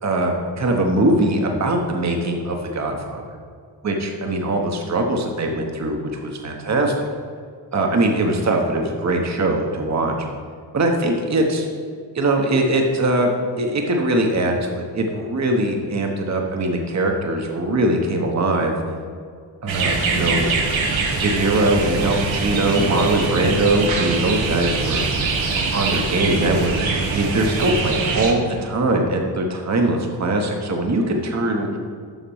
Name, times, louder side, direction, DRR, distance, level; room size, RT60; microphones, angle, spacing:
voice 1, 0.0-3.4 3.8-7.1 7.7-10.1 10.7-18.8 19.6-20.5 21.2-25.1 25.7-31.7, right 2 dB, 35° right, 2 dB, 1.1 m, -21 dB
sound 1, 19.7-28.3, right 4 dB, 80° right, 1.3 m, -23 dB
7.3 x 5.8 x 5.5 m, 2.1 s
cardioid pair, 80°, 46 cm